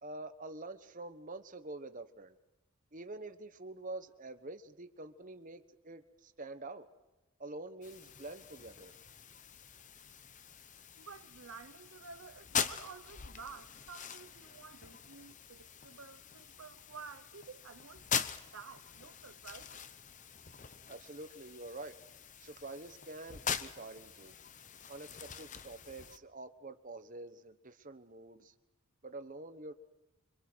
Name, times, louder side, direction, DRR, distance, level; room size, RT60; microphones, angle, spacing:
voice 1, 0.0-2.4 2.9-6.9 7.4-8.9 20.9-21.9 22.4-24.3 24.9-28.5 29.0-29.7, right 2 dB, 35° right, 1.2 m, -47 dB
sound 1, 7.8-26.2, left 7 dB, 35° left, 0.8 m, -43 dB
voice 2, 11.0-19.8, right 5 dB, 65° right, 0.8 m, -52 dB
25.5 x 25.5 x 6.3 m
head